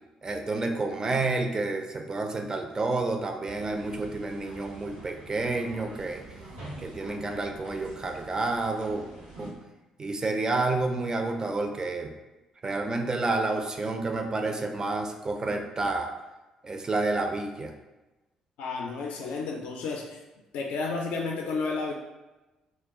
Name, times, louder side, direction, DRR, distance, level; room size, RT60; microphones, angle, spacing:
voice 1, 0.2-6.2 6.8-9.0 9.4-9.6 10.0-12.1 12.6-16.1 16.6-17.7, right 3 dB, 30° right, 4 dB, 0.4 m, -29 dB
sound 1, 3.4-9.5, right 2 dB, 85° right, 0.9 m, -45 dB
voice 2, 18.6-20.2 20.5-21.9, left 4 dB, 65° left, 0 dB, 0.3 m, -31 dB
2.2 x 2.1 x 3.5 m, 1.1 s
figure-of-eight pair, 45°, 2 cm